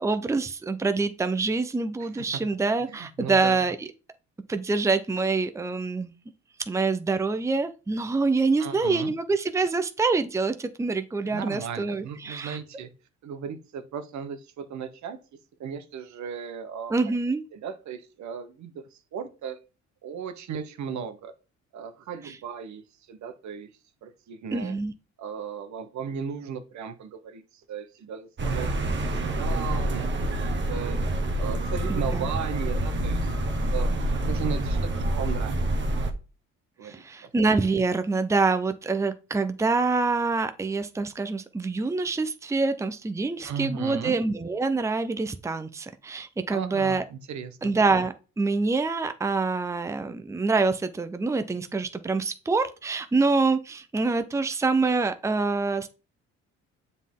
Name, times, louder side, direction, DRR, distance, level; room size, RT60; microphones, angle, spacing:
voice 1, 0.0-3.8 4.5-6.1 6.7-12.6 16.9-17.4 22.2-22.4 24.5-24.9 32.1-32.3 36.8-47.1 47.6-55.9, right 3 dB, 10° right, 10 dB, 0.6 m, -26 dB
voice 2, 2.0-2.4 2.9-3.6 8.6-9.1 11.2-12.9 13.2-15.2 15.6-16.9 17.5-18.8 19.1-19.6 20.0-21.3 21.7-22.8 23.1-23.7 24.0-24.7 25.2-27.4 27.7-29.1 29.4-30.1 30.3-31.0 31.4-33.9 34.3-35.6 36.8-37.0 43.4-44.1 46.5-47.7, right 7 dB, 70° right, 10 dB, 1.0 m, -36 dB
sound 1, 28.4-36.1, right 1 dB, 40° right, 1.2 m, -27 dB
7.2 x 4.1 x 3.7 m, 0.33 s
cardioid pair, 90°, 30 cm